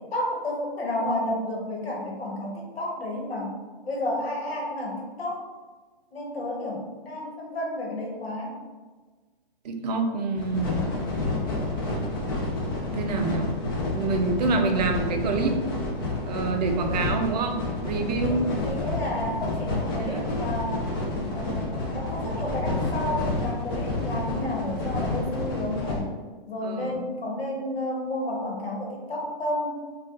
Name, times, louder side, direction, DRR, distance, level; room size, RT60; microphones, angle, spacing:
voice 1, 0.1-3.5 3.8-5.5 6.1-8.5 18.2-20.9 21.3-26.1 26.4-29.8, left 1 dB, 90° left, -1 dB, 1.1 m, -31 dB
voice 2, 9.6-10.9 12.7-13.5 13.9-15.6 16.2-18.5 20.0-20.3 26.6-27.1, right 3 dB, 45° right, 3 dB, 0.4 m, -27 dB
sound 1, 10.4-26.0, left 2 dB, 25° left, 0.4 m, -29 dB
4.3 x 2.4 x 2.4 m, 1.4 s
hypercardioid pair, 150°, 30 cm